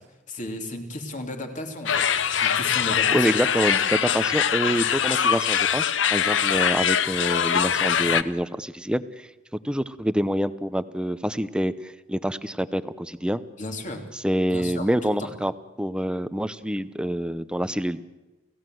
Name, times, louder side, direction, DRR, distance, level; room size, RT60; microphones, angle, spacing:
voice 1, 0.3-2.0 2.4-3.3 13.6-14.1 14.5-15.3, left 2 dB, 45° left, 3 dB, 3.1 m, -34 dB
sound 1, 1.9-8.2, left 8 dB, 80° left, 0.8 m, -23 dB
voice 2, 3.1-9.3 9.6-13.4 14.1-15.5 15.8-18.1, equal, 5° right, 13 dB, 0.7 m, -26 dB
29.5 x 16.0 x 7.8 m, 1.1 s
head